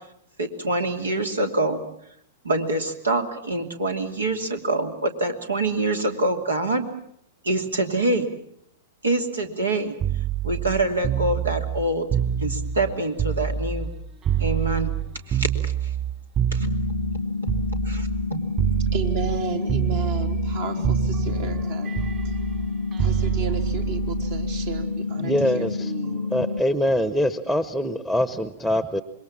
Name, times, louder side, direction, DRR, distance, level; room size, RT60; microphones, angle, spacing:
voice 1, 0.4-1.8 2.4-6.9 7.4-8.3 9.0-9.9 10.4-12.1 12.4-13.9 14.4-14.9 15.3-15.7 16.5-16.7 17.8-18.4, right 2 dB, 80° right, 2.8 m, -25 dB
sound 1, 10.0-14.0 14.2-18.3 18.6-19.4 19.7-20.6 20.8-24.8 26.0-26.3, right 8 dB, 35° right, 4.1 m, -26 dB
sound 2, 16.6-26.6, left 4 dB, 90° left, 0.9 m, -29 dB
voice 2, 18.9-21.9 22.3-22.4 23.0-26.3, right 6 dB, 55° right, 3.4 m, -33 dB
voice 3, 25.2-25.9 26.3-29.0, equal, 5° right, 1.1 m, -24 dB
26.5 x 22.0 x 7.4 m
figure-of-eight pair, 105°, 0 cm